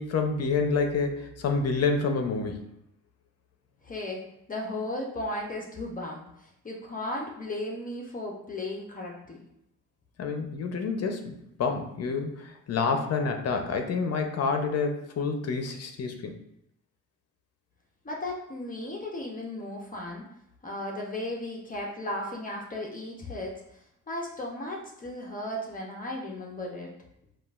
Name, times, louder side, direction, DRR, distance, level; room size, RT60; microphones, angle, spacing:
voice 1, 0.0-2.6 10.2-16.3, left 4 dB, 55° left, 5 dB, 0.9 m, -28 dB
voice 2, 3.8-4.2 4.5-9.4 18.0-20.2 20.6-23.5 24.1-26.9, left 1 dB, 25° left, -2 dB, 1.0 m, -35 dB
7.5 x 2.6 x 2.5 m, 0.78 s
cardioid pair, 90°, 30 cm